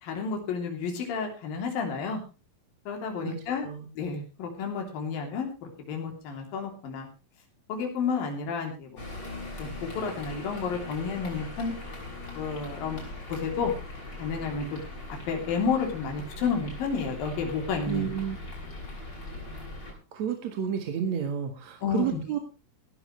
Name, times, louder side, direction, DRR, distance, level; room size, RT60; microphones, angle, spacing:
voice 1, 0.0-2.2 2.9-3.7 4.0-7.1 7.7-8.9 9.6-11.7 12.3-13.0 13.3-13.7 14.2-14.8 15.3-18.1 21.8-22.2, left 5 dB, 75° left, 3 dB, 4.9 m, -31 dB
voice 2, 3.2-3.9 17.9-18.4 19.8-22.4, right 8 dB, 55° right, 6 dB, 2.6 m, -31 dB
sound 1, 9.0-19.9, left 2 dB, 30° left, 6.7 m, -40 dB
17.5 x 14.0 x 3.2 m, 0.31 s
omnidirectional pair, 4.1 m